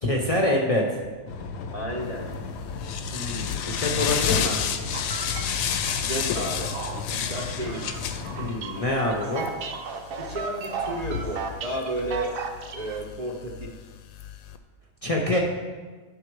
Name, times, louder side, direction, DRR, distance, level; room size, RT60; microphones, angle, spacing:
voice 1, 0.0-1.0 3.1-4.6 8.4-9.5 15.0-15.4, left 1 dB, 35° left, -1 dB, 0.6 m, -25 dB
sound 1, 1.3-8.6, left 4 dB, 65° left, 0.8 m, -36 dB
voice 2, 1.7-2.3 6.0-6.8 7.1-7.9 10.2-12.3 12.7-13.7, right 1 dB, 40° right, -1 dB, 0.6 m, -32 dB
sound 2, 2.1-14.6, left 8 dB, 85° left, 1.0 m, -32 dB
sound 3, 4.9-13.0, right 5 dB, 85° right, 1.1 m, -35 dB
10.5 x 3.8 x 4.6 m, 1.4 s
omnidirectional pair, 1.4 m